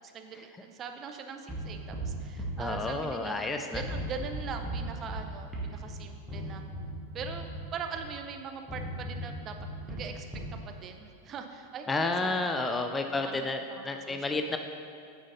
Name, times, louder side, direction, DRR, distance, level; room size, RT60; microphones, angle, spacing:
voice 1, 0.1-6.6 7.1-7.5 7.7-9.6 9.9-10.3 10.7-11.9 12.2-12.4 12.8-12.9 13.2-14.2, right 5 dB, 30° right, 5 dB, 0.7 m, -41 dB
sound 1, 1.5-3.4 3.7-8.2 8.7-10.6, right 1 dB, 5° right, 1.7 m, -38 dB
voice 2, 2.6-3.8 11.9-14.6, left 3 dB, 15° left, 6 dB, 0.4 m, -31 dB
9.2 x 6.2 x 4.1 m, 2.4 s
figure-of-eight pair, 90°, 0 cm